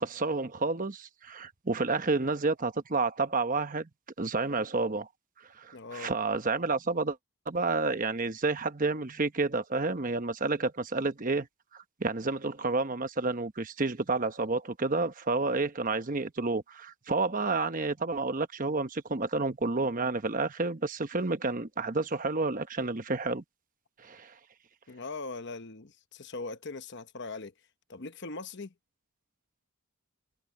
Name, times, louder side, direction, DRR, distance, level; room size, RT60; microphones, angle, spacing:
voice 1, 0.0-3.9 4.2-5.1 5.6-7.2 7.5-11.5 11.7-23.4 24.0-24.3, right 3 dB, 35° right, 1.0 m, -30 dB
voice 2, 5.7-6.1 24.9-27.5 27.9-28.7, left 3 dB, 55° left, 1.0 m, -40 dB
head